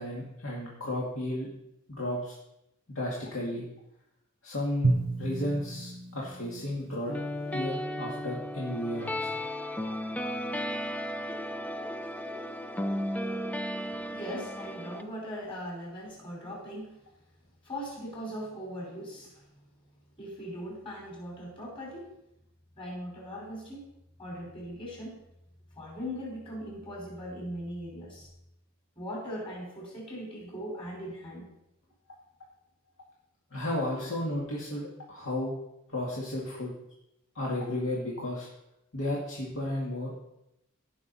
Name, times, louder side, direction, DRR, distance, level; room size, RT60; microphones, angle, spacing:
voice 1, 0.0-1.5 1.9-2.3 2.9-3.7 4.4-4.9 5.2-7.1 7.5-9.3 33.5-35.5 35.9-36.7 37.4-38.5 38.9-40.2, left 1 dB, 65° left, -5 dB, 2.2 m, -33 dB
Drum, 4.8-7.8, right 2 dB, 60° right, 0.7 m, -32 dB
sound 1, 7.1-15.0, equal, 5° left, 0.4 m, -34 dB
voice 2, 14.1-17.0 17.6-19.4 20.2-22.1 22.8-23.9 24.2-25.2 25.7-28.3 29.0-31.5 34.0-34.1, equal, 25° left, -3 dB, 4.6 m, -39 dB
16.5 x 6.2 x 4.2 m, 0.83 s
head